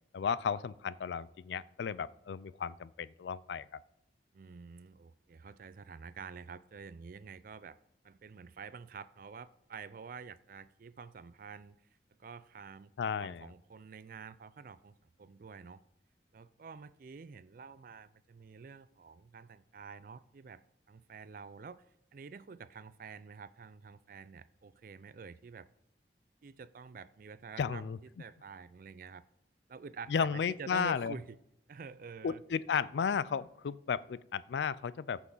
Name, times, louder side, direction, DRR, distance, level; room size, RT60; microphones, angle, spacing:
voice 1, 0.1-3.7 13.0-13.5 27.6-28.0 30.1-31.1 32.2-35.2, left 6 dB, 75° left, 19 dB, 0.4 m, -34 dB
voice 2, 4.3-7.8 8.0-11.9 12.2-15.8 16.3-20.6 20.9-21.8 22.1-25.7 26.4-27.9 28.2-29.2 29.7-31.4 31.7-32.4, right 5 dB, 50° right, 16 dB, 0.4 m, -48 dB
14.5 x 6.1 x 3.9 m, 0.80 s
head